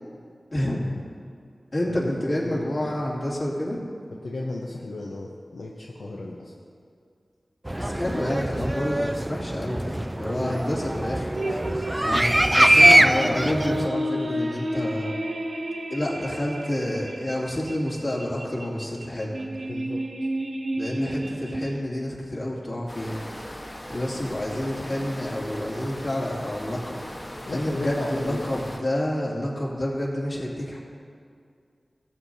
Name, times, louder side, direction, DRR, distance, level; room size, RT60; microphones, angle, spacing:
voice 1, 0.5-0.9 1.7-3.8 7.8-11.3 12.0-15.1 15.9-19.5 20.7-23.2 23.9-27.0 27.5-30.8, left 1 dB, 55° left, -5 dB, 2.6 m, -29 dB
voice 2, 1.8-3.0 4.2-6.5 10.3-10.6 12.6-13.1 19.6-20.0 24.1-24.3 27.5-28.5, left 2 dB, 80° left, -3 dB, 0.8 m, -35 dB
sound 1, 7.7-13.9, right 1 dB, 20° right, 0.3 m, -22 dB
sound 2, 11.3-21.8, equal, 65° right, 0.8 m, -31 dB
sound 3, 22.9-28.8, equal, 25° left, 1.2 m, -39 dB
18.0 x 7.5 x 2.7 m, 2.3 s
cardioid pair, 50°, 0 cm